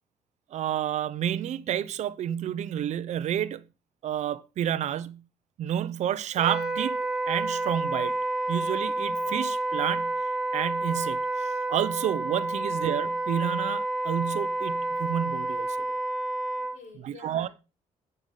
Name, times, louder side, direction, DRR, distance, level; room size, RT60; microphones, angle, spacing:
voice 1, 0.5-3.6 4.0-5.2 5.6-7.0 7.3-8.2 8.5-10.2 10.5-15.8 17.0-17.5, right 10 dB, 60° right, 0.7 m, -30 dB
Wind instrument woodwind instrument, 6.4-16.8, right 2 dB, 5° right, 1.6 m, -29 dB
voice 2, 16.5-17.5, left 4 dB, 65° left, 4.5 m, -48 dB
9.1 x 6.7 x 5.4 m
cardioid pair, 120°, 13 cm